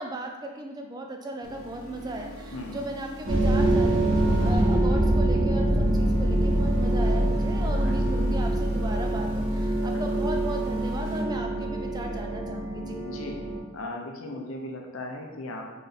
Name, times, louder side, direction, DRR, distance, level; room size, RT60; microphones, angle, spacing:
voice 1, 0.0-4.0 4.4-13.0, right 1 dB, 20° right, 3 dB, 0.3 m, -36 dB
sound 1, 1.4-11.2, left 1 dB, 85° right, 1.0 m, -43 dB
sound 2, 3.3-13.6, right 1 dB, 60° right, 1.2 m, -24 dB
voice 2, 4.4-4.7 7.8-8.1 9.9-10.5 13.0-13.4 13.7-15.7, left 2 dB, 70° left, 2 dB, 0.7 m, -38 dB
3.9 x 3.3 x 4.0 m, 1.2 s
head